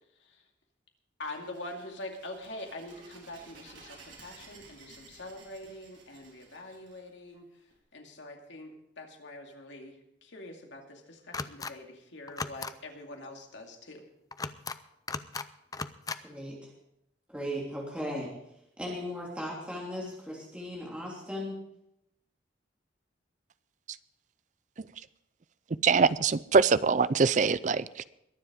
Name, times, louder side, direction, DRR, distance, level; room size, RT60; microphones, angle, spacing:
voice 1, 1.2-14.0, left 1 dB, 75° left, 2 dB, 2.4 m, -44 dB
sound 1, 1.2-7.7, right 4 dB, 80° right, 4.4 m, -55 dB
sound 2, 11.3-11.7 12.3-12.7 14.3-14.8 15.1-15.5 15.7-16.2, left 4 dB, 20° left, 0.4 m, -36 dB
voice 2, 16.2-16.7 17.3-18.3 18.8-21.6, equal, 5° right, -4 dB, 3.1 m, -37 dB
voice 3, 25.8-28.0, right 5 dB, 40° right, 17 dB, 0.4 m, -23 dB
22.0 x 7.5 x 5.0 m, 0.81 s
head